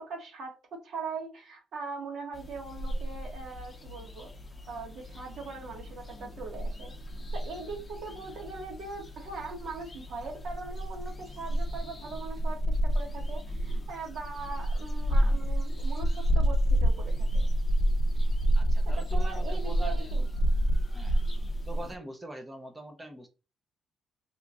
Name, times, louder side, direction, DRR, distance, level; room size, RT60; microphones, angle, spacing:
voice 1, 0.0-4.3 4.7-6.9 7.3-17.5 18.8-20.2, right 4 dB, 70° right, 1.3 m, -41 dB
sound 1, 2.3-21.9, right 1 dB, 35° left, 0.6 m, -29 dB
voice 2, 18.5-20.1 20.9-21.2 21.7-23.3, right 1 dB, 15° right, 0.6 m, -43 dB
2.9 x 2.4 x 3.6 m
cardioid pair, 90°, 0 cm